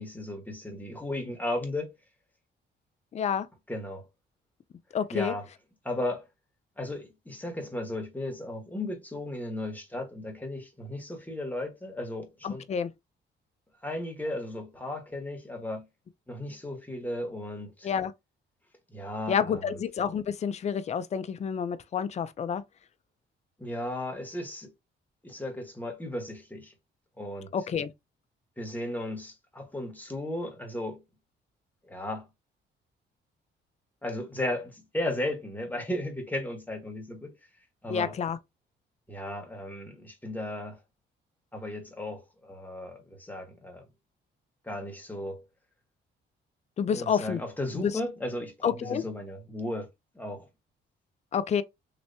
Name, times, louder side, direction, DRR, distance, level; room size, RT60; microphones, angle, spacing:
voice 1, 0.0-1.9 3.7-4.0 5.1-5.5 5.8-6.2 6.8-12.6 13.8-15.9 16.3-17.9 18.9-19.8 23.6-24.7 25.2-26.7 27.2-27.5 28.6-31.0 31.9-32.3 34.0-37.3 37.8-38.2 39.1-40.8 41.5-43.9 44.6-45.4 46.9-49.9 50.1-50.5, left 1 dB, 10° left, 1.3 m, -35 dB
voice 2, 3.1-3.5 4.9-5.3 12.4-12.9 17.8-18.1 19.3-22.6 27.5-27.9 37.9-38.4 46.8-47.4 47.7-47.9 48.6-49.0 51.3-51.6, left 7 dB, 35° left, 0.4 m, -29 dB
3.2 x 3.0 x 2.7 m
cardioid pair, 90°, 20 cm